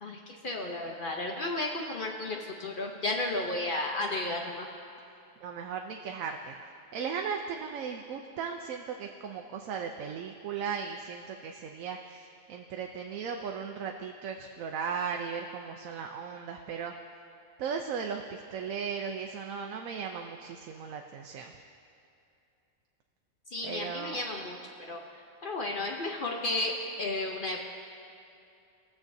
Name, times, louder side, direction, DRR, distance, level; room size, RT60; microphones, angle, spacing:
voice 1, 0.0-4.7 23.5-24.6 24.9-27.6, left 2 dB, 50° left, 1 dB, 0.7 m, -33 dB
voice 2, 5.4-6.6 6.9-16.9 17.6-21.5 23.6-24.2, right 6 dB, 90° right, 3 dB, 1.0 m, -37 dB
20.5 x 7.1 x 2.6 m, 2.6 s
omnidirectional pair, 1.4 m